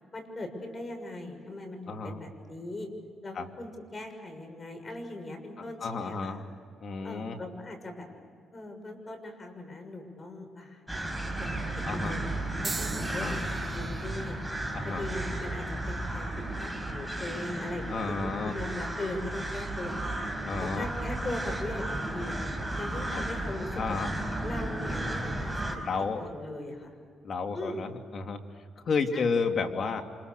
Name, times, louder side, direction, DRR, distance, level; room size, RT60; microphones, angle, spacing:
voice 1, 0.1-2.9 3.2-6.3 7.0-8.1 8.5-10.8 11.4-13.4 13.7-14.4 14.8-16.3 16.5-18.2 18.4-20.1 20.6-22.4 22.8-24.0 24.4-25.8 26.2-26.9 27.5-27.8 29.1-29.3, left 1 dB, 30° left, 5 dB, 6.7 m, -39 dB
voice 2, 1.9-2.2 3.3-3.5 5.8-6.4 6.8-7.4 11.9-12.1 13.1-13.4 14.7-15.1 17.9-18.5 20.4-20.9 23.1-23.2 23.8-24.1 25.8-26.3 27.2-28.4 28.8-30.0, left 4 dB, 50° left, 4 dB, 2.9 m, -31 dB
sound 1, 10.9-25.8, right 1 dB, ahead, 4.8 m, -34 dB
sound 2, 12.6-16.8 17.5-17.9 18.9-19.1, right 3 dB, 25° right, 1.1 m, -43 dB
29.0 x 27.0 x 6.8 m, 2.1 s
cardioid pair, 90°, 0 cm